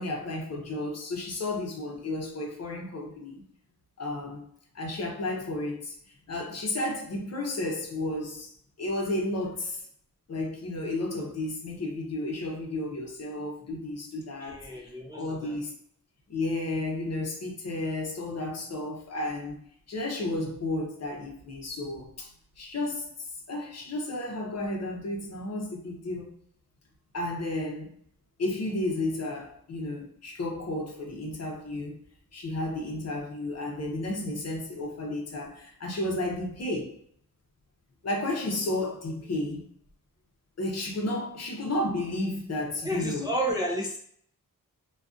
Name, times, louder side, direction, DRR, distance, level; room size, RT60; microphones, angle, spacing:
voice 1, 0.0-3.4 4.0-4.4 4.7-5.9 6.3-8.5 8.8-9.8 10.3-15.7 16.3-19.6 19.9-22.3 22.6-26.3 27.1-27.9 28.4-32.0 32.3-37.0 38.0-39.6 40.6-43.3, left 2 dB, 50° left, 0 dB, 0.7 m, -32 dB
voice 2, 14.4-15.6 42.8-44.0, right 1 dB, 10° right, -2 dB, 0.3 m, -31 dB
2.3 x 2.3 x 2.5 m, 0.64 s
wide cardioid pair, 100°, 34 cm